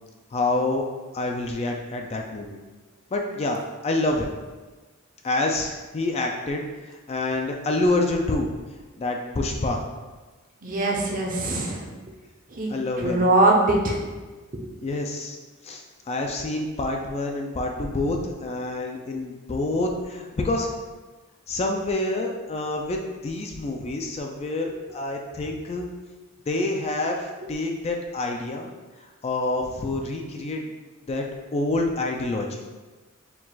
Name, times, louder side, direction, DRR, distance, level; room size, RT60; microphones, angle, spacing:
voice 1, 0.3-0.8 1.1-2.6 3.1-4.3 5.2-8.5 9.0-9.8 12.7-13.3 14.8-15.4 15.6-20.7 21.5-25.9 26.5-28.7 29.2-30.7 31.1-32.6, left 2 dB, 30° left, 2 dB, 0.4 m, -27 dB
voice 2, 10.6-11.9 12.5-12.7 13.0-14.0, right 2 dB, 40° right, -1 dB, 0.7 m, -22 dB
4.5 x 2.4 x 3.9 m, 1.3 s
head